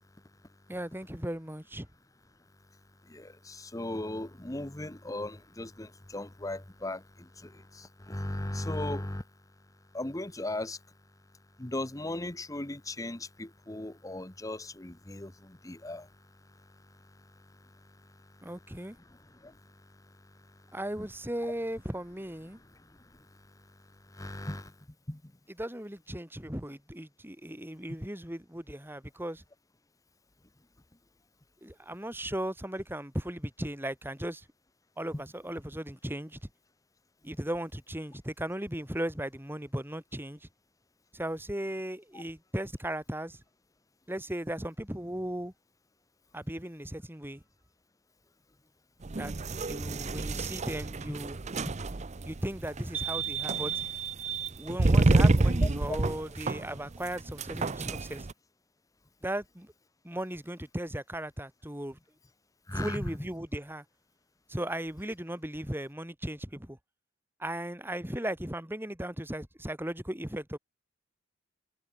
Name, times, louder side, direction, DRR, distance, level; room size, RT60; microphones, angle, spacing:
voice 1, 0.7-1.9 18.4-19.0 20.7-22.6 25.5-29.4 31.6-34.4 35.0-36.4 37.2-40.5 41.1-43.4 44.1-45.5 46.3-47.4 49.1-49.3 49.6-51.4 52.3-53.8 54.6-58.3 59.2-59.7 60.0-62.0 62.7-63.8 64.5-66.8 67.4-70.6, right 1 dB, 10° right, 3.4 m, -37 dB
voice 2, 3.1-9.2 9.9-10.8 11.6-16.1 19.1-19.6 23.0-23.1 24.1-24.7 25.1-25.2 42.1-42.2 55.6-55.7 62.7-63.0, left 1 dB, 15° left, 1.1 m, -37 dB
sound 1, 49.0-58.3, right 2 dB, 35° right, 0.7 m, -28 dB
head